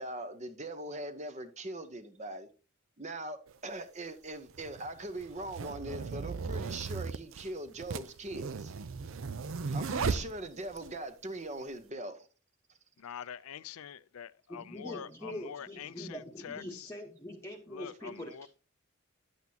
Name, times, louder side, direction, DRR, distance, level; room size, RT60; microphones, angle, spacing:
voice 1, 0.0-2.5 3.0-8.7 9.5-12.3, right 1 dB, 30° right, 0.8 m, -41 dB
sound 1, 3.5-3.6 4.5-10.9, right 5 dB, 65° right, 0.5 m, -36 dB
voice 2, 13.0-16.9 17.7-18.5, left 8 dB, 75° left, 0.4 m, -45 dB
voice 3, 14.5-18.5, left 1 dB, 10° left, 1.0 m, -43 dB
10.5 x 8.2 x 2.8 m
head